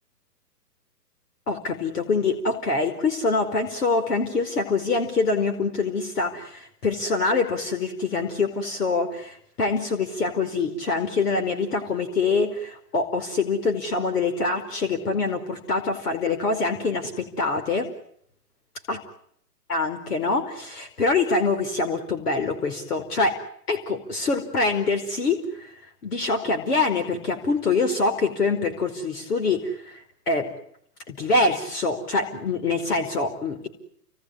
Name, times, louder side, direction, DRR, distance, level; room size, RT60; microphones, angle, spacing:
voice 1, 1.5-17.9 18.9-19.0 19.7-25.7 26.0-30.5 31.1-33.7, left 3 dB, 65° left, 7 dB, 4.9 m, -25 dB
30.0 x 19.0 x 10.0 m, 0.70 s
hypercardioid pair, 140°, 49 cm